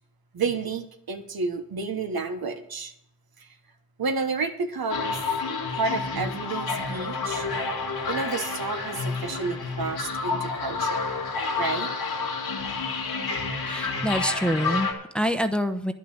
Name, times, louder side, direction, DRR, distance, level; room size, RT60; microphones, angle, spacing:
voice 1, 0.3-2.9 3.4-3.5 4.0-5.2 5.7-7.5 8.1-11.1 11.6-11.9, right 4 dB, 75° right, 7 dB, 1.3 m, -30 dB
sound 1, 4.9-14.9, left 4 dB, 90° left, 2.0 m, -29 dB
voice 2, 13.7-15.9, equal, 5° left, 7 dB, 0.9 m, -26 dB
10.5 x 6.0 x 8.8 m, 0.72 s
cardioid pair, 60°, 37 cm